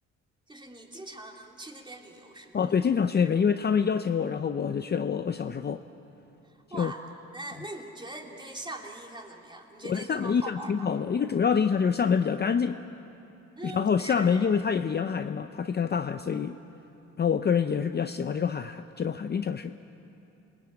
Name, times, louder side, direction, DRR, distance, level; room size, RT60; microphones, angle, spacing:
voice 1, 0.5-2.7 6.4-7.0 7.3-10.9 13.6-14.5, right 2 dB, 15° right, 1 dB, 3.1 m, -42 dB
voice 2, 2.5-5.8 6.7-6.9 9.8-12.8 13.6-16.6 17.2-19.7, left 6 dB, 35° left, 9 dB, 0.7 m, -26 dB
28.0 x 20.0 x 8.9 m, 2.9 s
cardioid pair, 90°, 30 cm